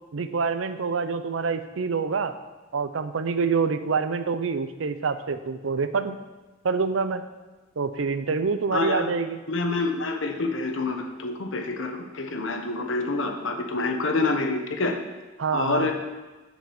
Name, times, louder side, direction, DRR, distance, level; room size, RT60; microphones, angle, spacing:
voice 1, 0.1-2.4 2.7-6.2 6.6-7.2 7.8-9.4 15.4-15.9, right 5 dB, 90° right, 11 dB, 0.6 m, -26 dB
voice 2, 8.7-9.1 9.5-15.0 15.5-15.9, left 3 dB, 80° left, 4 dB, 1.1 m, -27 dB
7.5 x 5.0 x 7.0 m, 1.2 s
head